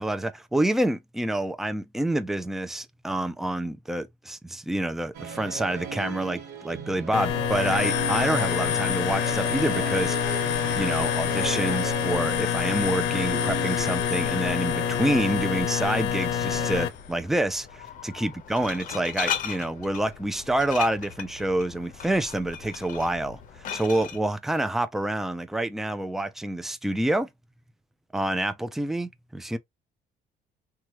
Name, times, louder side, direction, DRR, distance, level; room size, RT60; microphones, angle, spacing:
voice 1, 0.0-23.4 23.7-27.3 28.1-29.6, right 1 dB, ahead, 0.4 m, -27 dB
Musical instrument, 5.1-16.7, right 8 dB, 75° right, 1.1 m, -36 dB
sound 1, 7.1-16.9, left 11 dB, 90° left, 0.6 m, -26 dB
Glass, 16.4-24.2, left 8 dB, 50° left, 0.7 m, -37 dB
3.1 x 2.3 x 2.8 m
cardioid pair, 110°, 17 cm